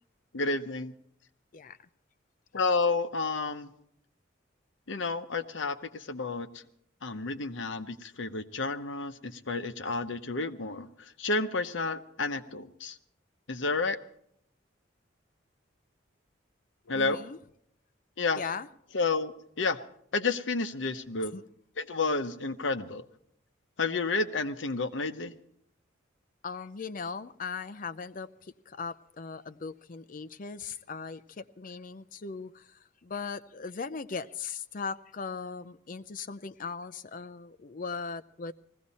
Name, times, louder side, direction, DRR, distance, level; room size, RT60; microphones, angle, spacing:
voice 1, 0.3-0.9 2.5-3.7 4.9-6.5 7.0-10.9 11.2-12.9 13.5-14.0 16.9-17.2 18.2-18.4 18.9-19.3 19.6-19.8 20.1-21.3 21.8-23.0 23.8-25.3, left 3 dB, 75° left, 0.9 m, -30 dB
voice 2, 16.9-17.4 18.3-18.7 21.2-21.4 26.4-38.5, left 5 dB, 45° left, 0.6 m, -39 dB
19.5 x 16.0 x 4.2 m
head